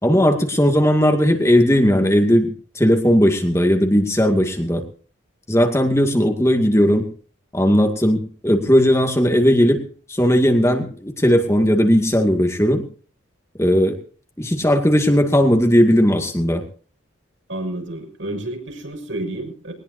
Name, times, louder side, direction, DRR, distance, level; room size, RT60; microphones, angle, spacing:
voice 1, 0.0-4.8 5.5-7.1 7.5-12.8 13.6-14.0 14.4-16.6, equal, 15° left, 4 dB, 2.2 m, -17 dB
voice 2, 17.5-19.7, right 1 dB, 75° right, 4 dB, 6.3 m, -30 dB
21.0 x 19.5 x 2.7 m, 0.42 s
head